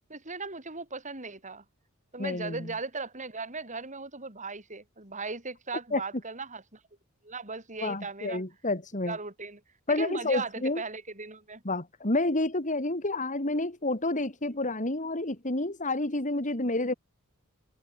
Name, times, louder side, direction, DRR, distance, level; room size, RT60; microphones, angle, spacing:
voice 1, 0.1-1.6 2.1-6.8 7.2-8.4 9.1-9.6 9.9-11.6 14.4-14.5, right 4 dB, 35° right, 7.8 m, -38 dB
voice 2, 2.2-2.7 5.9-6.0 7.8-9.2 9.9-10.8 11.6-16.9, left 2 dB, 35° left, 3.2 m, -29 dB
head